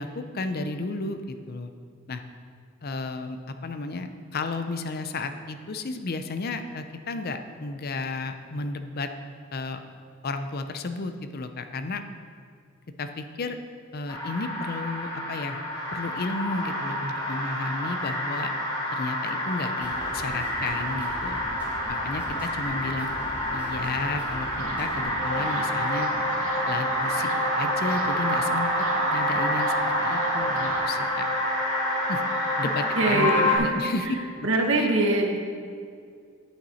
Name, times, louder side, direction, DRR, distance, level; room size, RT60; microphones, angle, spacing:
voice 1, 0.0-1.7 2.1-2.2 2.8-9.1 9.5-9.8 10.2-12.0 13.0-13.6 13.9-15.6 15.9-18.5 18.9-21.4 21.9-23.1 23.5-24.5 24.8-26.1 26.7-27.3 27.6-28.7 29.1-31.3 32.1-32.2 32.6-34.1 34.8-34.9, left 3 dB, 50° left, 8 dB, 0.6 m, -33 dB
sound 1, 14.1-33.6, left 1 dB, 20° left, 1.9 m, -28 dB
sound 2, 19.8-25.8, equal, 10° right, 1.4 m, -41 dB
sound 3, 24.6-30.8, right 4 dB, 90° right, 0.8 m, -31 dB
voice 2, 33.0-33.9 34.4-35.4, right 2 dB, 70° right, 1 dB, 1.3 m, -23 dB
8.9 x 8.6 x 4.2 m, 2.2 s
head